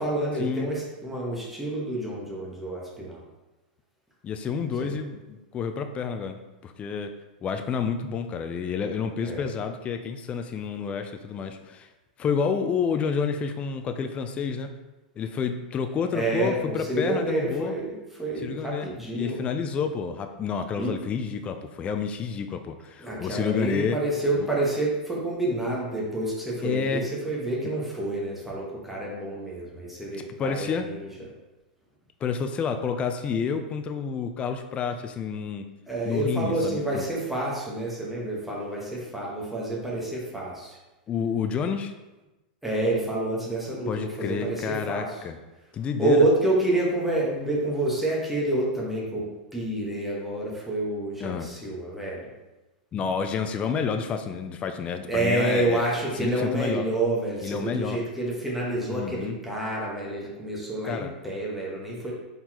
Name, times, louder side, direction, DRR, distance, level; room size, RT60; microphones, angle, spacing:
voice 1, 0.0-3.2 4.8-5.0 9.2-9.5 16.1-19.4 20.8-20.9 23.0-31.1 35.9-40.8 42.6-45.2 46.0-49.3 49.5-52.2 55.1-62.1, right 2 dB, 5° right, -5 dB, 1.2 m, -28 dB
voice 2, 4.2-7.1 7.4-11.9 12.2-14.7 15.2-17.7 18.4-24.0 24.3-24.5 26.6-27.1 30.4-30.9 32.2-35.7 36.1-37.0 41.1-41.9 43.9-45.4 45.7-46.2 51.2-51.5 52.9-55.8 56.2-56.8 57.4-58.0 58.9-59.4 60.8-61.1, left 6 dB, 25° left, 7 dB, 0.3 m, -29 dB
4.2 x 3.9 x 2.9 m, 1.1 s
hypercardioid pair, 125°, 5 cm